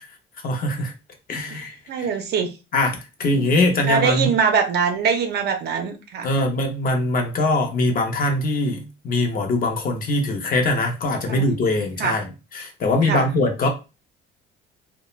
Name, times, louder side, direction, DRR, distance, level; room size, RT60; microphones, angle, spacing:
voice 1, 0.4-0.9 1.3-2.1 2.7-4.3 6.2-13.7, left 2 dB, 45° left, 0.6 m, -22 dB
voice 2, 1.9-2.5 3.9-6.3 11.3-11.4 12.0-12.2 13.1-13.2, right 6 dB, 50° right, 0.6 m, -22 dB
2.3 x 2.1 x 3.0 m
cardioid pair, 130°, 21 cm